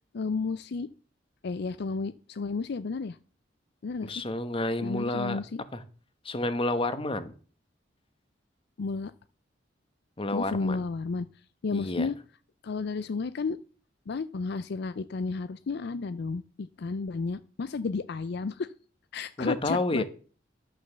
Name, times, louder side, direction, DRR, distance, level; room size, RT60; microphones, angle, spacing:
voice 1, 0.1-0.9 1.4-3.2 3.8-4.2 4.8-5.6 8.8-9.1 10.3-11.3 11.6-12.1 12.6-13.6 14.1-18.7 19.1-20.0, left 4 dB, 60° left, 14 dB, 0.4 m, -32 dB
voice 2, 4.0-5.4 5.7-5.8 6.2-7.3 10.2-10.8 11.7-12.1 19.4-20.0, left 2 dB, 30° left, 11 dB, 1.1 m, -30 dB
11.5 x 6.4 x 6.6 m, 0.41 s
head